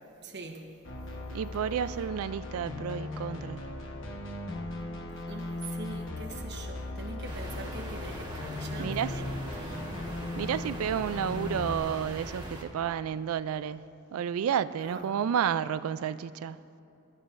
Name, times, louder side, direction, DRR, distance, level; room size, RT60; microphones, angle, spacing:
voice 1, 0.2-0.6 0.9-1.0 5.3-10.2 14.8-15.1, right 2 dB, 55° right, 1 dB, 1.0 m, -43 dB
sound 1, 0.8-11.8, left 2 dB, 65° left, 1.2 m, -38 dB
voice 2, 1.3-3.7 8.8-9.2 10.4-13.8 14.1-16.6, right 8 dB, 85° right, 15 dB, 0.3 m, -31 dB
sound 2, 7.2-12.6, right 1 dB, 20° right, 1.6 m, -41 dB
24.5 x 11.5 x 2.6 m, 2.9 s
head